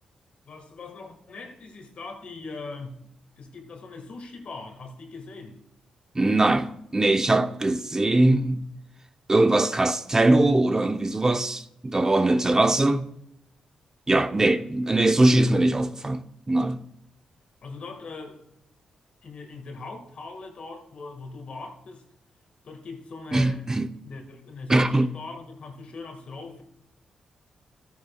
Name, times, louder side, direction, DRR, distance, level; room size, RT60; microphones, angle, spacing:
voice 1, 0.4-3.0 3.4-5.6 14.4-14.7 17.6-18.6 19.2-22.0 22.6-23.7 24.0-26.6, left 3 dB, 60° left, 1.9 m, -40 dB
voice 2, 6.1-8.7 9.3-13.1 14.1-16.8 23.3-23.9 24.7-25.1, right 2 dB, 25° right, 0.7 m, -21 dB
13.5 x 8.7 x 2.4 m
supercardioid pair, 50°, 2 cm